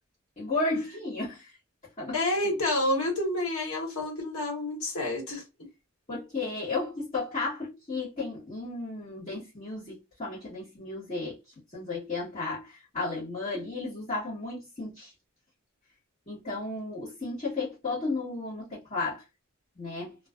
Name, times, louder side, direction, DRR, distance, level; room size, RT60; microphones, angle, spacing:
voice 1, 0.4-1.6 2.0-2.1 6.1-11.4 11.7-15.1 16.3-19.2 19.8-20.2, left 3 dB, 30° left, 1.2 m, -33 dB
voice 2, 2.1-5.4, left 1 dB, 90° left, 1.2 m, -29 dB
2.4 x 2.3 x 2.3 m
head